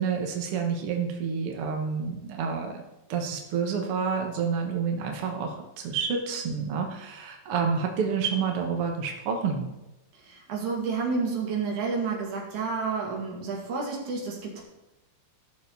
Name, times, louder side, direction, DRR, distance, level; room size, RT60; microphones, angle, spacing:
voice 1, 0.0-2.8 3.1-9.7, right 6 dB, 80° right, 2 dB, 1.2 m, -29 dB
voice 2, 10.2-14.6, right 4 dB, 50° right, -2 dB, 3.3 m, -30 dB
15.5 x 6.8 x 4.1 m, 0.96 s
omnidirectional pair, 4.7 m